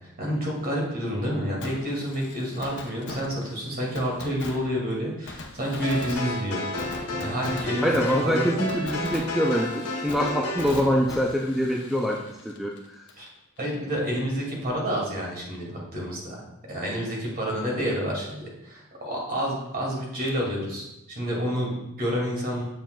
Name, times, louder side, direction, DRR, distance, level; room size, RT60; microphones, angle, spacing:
voice 1, 0.2-8.5 13.2-13.3 13.6-16.4 16.7-22.6, equal, 45° right, -2 dB, 2.2 m, -29 dB
Fireworks, 1.6-13.3 13.6-13.7 20.3-20.4, left 3 dB, 55° left, 0.8 m, -41 dB
sound 1, 5.8-10.7, left 1 dB, 85° left, 1.2 m, -32 dB
voice 2, 7.8-9.7 10.0-12.2 12.4-12.7, equal, ahead, -1 dB, 0.4 m, -24 dB
7.4 x 7.0 x 2.3 m, 0.89 s
head